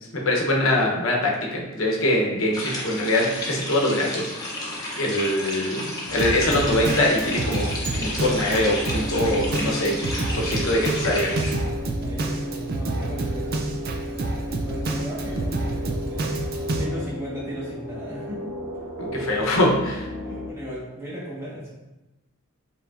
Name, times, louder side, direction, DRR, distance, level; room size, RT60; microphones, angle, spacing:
voice 1, 0.1-4.6 5.0-7.7 8.0-10.0 10.3-11.3 19.0-20.1, left 1 dB, 60° left, -1 dB, 0.8 m, -23 dB
sound 1, 2.5-11.5, left 1 dB, 15° left, 0.7 m, -32 dB
sound 2, 6.1-20.5, equal, 90° right, 0.9 m, -34 dB
Drum kit, 6.2-16.8, right 2 dB, 45° right, 0.4 m, -28 dB
voice 2, 10.8-11.3 12.0-18.5 20.2-21.7, equal, 10° right, -8 dB, 1.2 m, -37 dB
5.1 x 3.2 x 2.4 m, 1.0 s
head